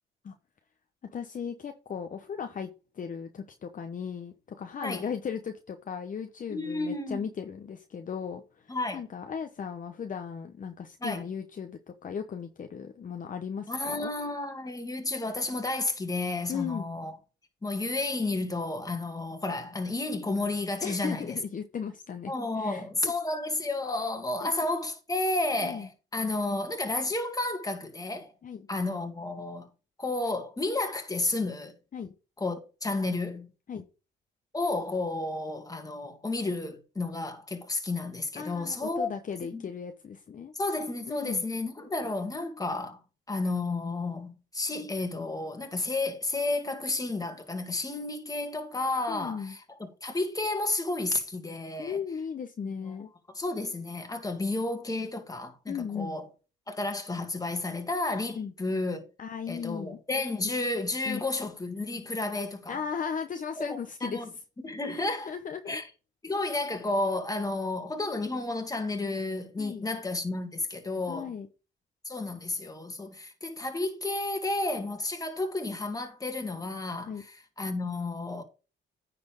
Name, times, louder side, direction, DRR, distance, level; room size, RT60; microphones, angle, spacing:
voice 1, 1.0-2.7 2.9-14.1 16.5-16.9 20.8-23.1 24.4-24.5 25.6-25.9 28.4-28.7 31.9-32.1 33.7-33.9 38.4-40.5 41.1-41.4 49.1-49.6 51.8-53.1 55.7-56.2 58.4-58.5 59.2-60.0 61.0-61.2 62.7-64.3 64.9-65.8 69.6-69.9 71.1-71.5 77.1-77.2, left 7 dB, 40° left, 0.9 m, -37 dB
voice 2, 6.5-7.2 8.7-9.0 11.0-11.2 13.7-17.1 17.6-21.4 22.3-28.3 28.7-29.7 30.0-31.7 32.4-33.5 34.5-39.1 39.5-39.6 40.5-43.0 43.3-52.0 52.8-52.9 53.3-56.3 56.7-59.0 59.5-62.8 63.6-64.3 64.6-65.3 65.7-65.9 66.2-71.3 72.0-78.4, left 2 dB, 20° left, 2.1 m, -32 dB
9.7 x 4.3 x 5.2 m
cardioid pair, 90°, 20 cm